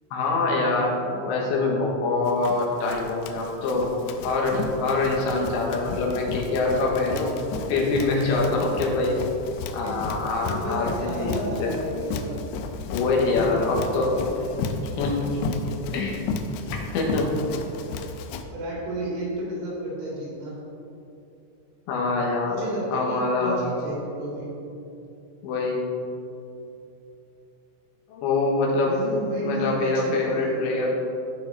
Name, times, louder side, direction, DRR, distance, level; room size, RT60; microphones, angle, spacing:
voice 1, 0.1-3.9 4.2-7.4 7.7-9.2 9.7-11.7 12.9-14.3 15.0-15.4 15.9-16.2 16.9-17.4 21.9-22.6 22.9-23.6 25.4-25.9 28.1-28.9 29.4-31.0, left 3 dB, 70° left, -2 dB, 3.2 m, -24 dB
Run, 2.3-18.4, left 4 dB, 90° left, 3.3 m, -34 dB
voice 2, 10.4-12.4 13.3-14.8 18.5-20.6 22.4-24.5 28.8-30.6, right 1 dB, 75° right, -6 dB, 5.0 m, -32 dB
15.0 x 5.6 x 3.9 m, 2.8 s
omnidirectional pair, 6.0 m